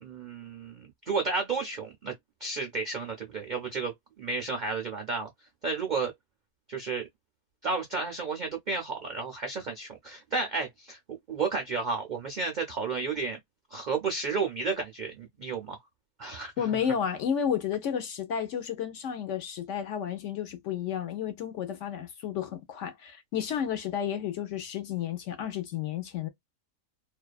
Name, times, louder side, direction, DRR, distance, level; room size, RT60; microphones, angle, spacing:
voice 1, 0.0-2.1 2.4-5.3 5.6-6.1 6.7-7.1 7.6-13.4 13.7-15.8 16.2-16.8, right 4 dB, 65° right, 0.4 m, -32 dB
voice 2, 16.6-26.3, left 8 dB, 65° left, 0.8 m, -32 dB
2.6 x 2.3 x 2.3 m
omnidirectional pair, 1.5 m